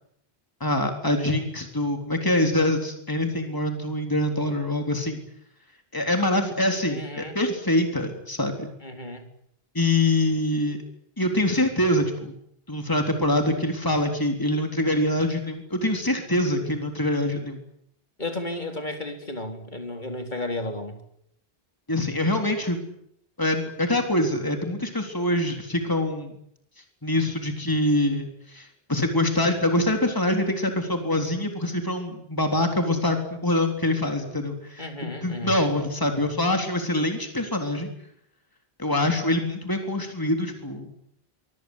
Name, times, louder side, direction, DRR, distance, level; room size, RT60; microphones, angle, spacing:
voice 1, 0.6-5.2 5.9-8.7 9.7-10.8 11.2-12.3 12.7-17.6 21.9-22.8 23.4-26.3 27.0-37.9 38.8-40.9, left 1 dB, 20° left, 4 dB, 3.8 m, -24 dB
voice 2, 6.9-7.3 8.8-9.2 18.2-21.0 34.8-35.6, left 1 dB, 50° left, 5 dB, 4.3 m, -33 dB
24.5 x 24.5 x 8.2 m, 0.72 s
omnidirectional pair, 1.0 m